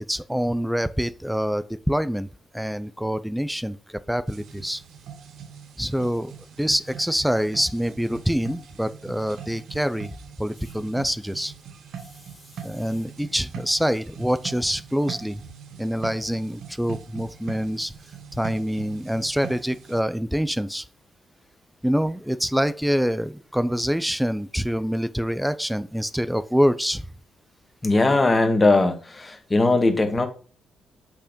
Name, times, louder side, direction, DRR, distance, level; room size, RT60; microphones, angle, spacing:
voice 1, 0.1-4.8 5.8-11.5 12.6-15.4 15.8-17.9 18.3-20.9 21.8-27.1, equal, 5° right, 0.6 m, -25 dB
sound 1, 4.3-20.0, right 7 dB, 75° right, 1.1 m, -42 dB
voice 2, 27.8-30.3, left 2 dB, 20° left, 1.6 m, -19 dB
8.6 x 3.4 x 5.2 m
cardioid pair, 90°, 0 cm